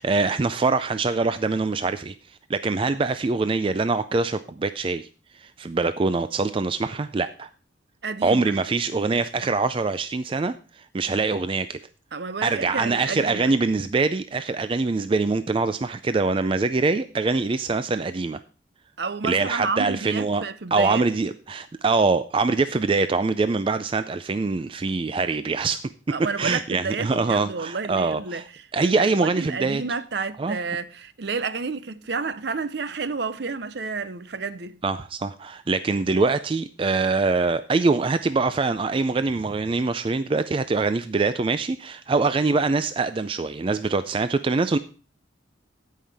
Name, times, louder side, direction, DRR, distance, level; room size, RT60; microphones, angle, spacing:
voice 1, 0.0-5.1 5.3-7.5 8.2-11.8 12.4-18.4 19.2-20.4 20.7-25.8 26.4-28.5 28.7-29.8 30.4-30.6 34.8-44.8, right 3 dB, 25° right, 0.3 m, -24 dB
voice 2, 8.0-8.4 12.1-13.5 19.0-21.0 26.1-34.7, right 4 dB, 55° right, 0.6 m, -30 dB
16.0 x 5.6 x 3.4 m
head